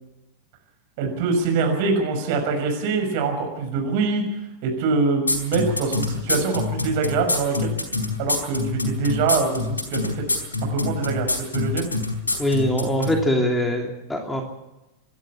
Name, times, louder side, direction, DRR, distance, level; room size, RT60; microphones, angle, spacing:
voice 1, 1.0-4.2 4.6-7.7 8.2-10.2 10.6-11.8, right 4 dB, 50° right, 4 dB, 6.0 m, -24 dB
sound 1, 5.3-13.1, left 3 dB, 75° left, 4.6 m, -24 dB
voice 2, 12.4-14.4, equal, 10° left, 2 dB, 3.0 m, -22 dB
26.5 x 12.0 x 8.6 m, 0.97 s
figure-of-eight pair, 90°, 0 cm